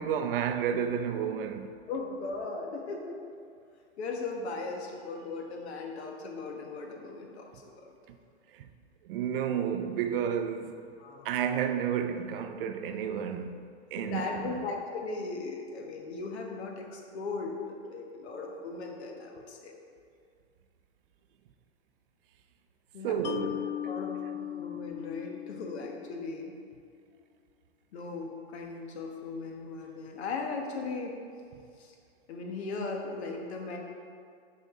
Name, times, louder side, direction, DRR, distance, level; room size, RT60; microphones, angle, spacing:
voice 1, 0.0-1.7 8.5-8.7 9.0-10.8 11.2-14.6 23.0-23.5, right 8 dB, 50° right, 0.5 m, -31 dB
voice 2, 1.9-3.1 4.0-7.8 11.0-11.3 14.0-19.8 22.9-23.5 23.8-24.2 24.6-26.5 27.9-31.1 31.8-31.9 32.3-33.8, left 3 dB, 70° left, 1.3 m, -38 dB
Mallet percussion, 23.2-26.5, left 11 dB, 85° left, 0.6 m, -38 dB
7.4 x 5.3 x 3.7 m
hypercardioid pair, 145°, 34 cm